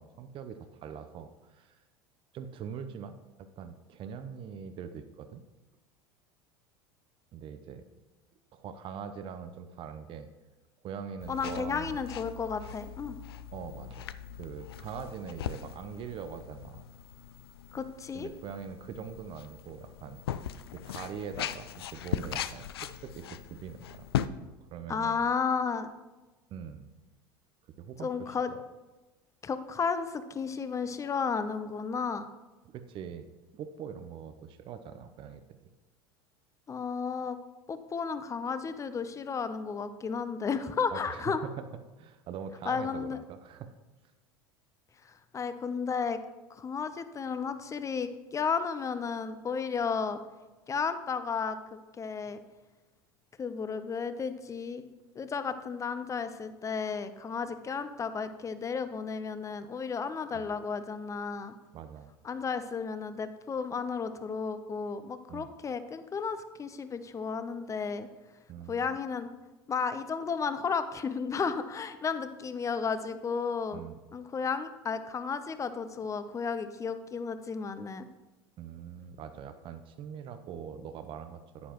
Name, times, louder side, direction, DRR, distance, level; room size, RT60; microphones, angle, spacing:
voice 1, 0.0-1.8 2.3-5.4 7.3-7.8 8.5-10.3 10.8-12.0 13.5-16.8 18.1-20.2 20.7-24.1 24.7-25.2 26.5-26.9 27.8-28.6 32.7-33.3 33.5-35.4 40.9-41.6 42.0-43.7 60.3-60.4 61.7-62.1 65.3-65.5 68.5-69.0 73.7-74.0 78.6-81.7, right 7 dB, 45° right, 9 dB, 0.7 m, -42 dB
sound 1, 11.2-24.3, left 10 dB, 75° left, 0.4 m, -39 dB
voice 2, 11.3-13.2 17.7-18.3 24.9-25.9 28.0-28.5 29.4-32.2 36.7-37.4 37.7-41.4 42.7-43.2 45.3-46.2 46.5-50.2 50.7-52.4 53.4-54.8 55.1-61.5 62.2-68.1 68.7-69.3 69.7-73.8 74.1-78.1, left 5 dB, 25° left, 11 dB, 0.8 m, -33 dB
9.9 x 9.5 x 3.0 m, 1.1 s
hypercardioid pair, 80°, 13 cm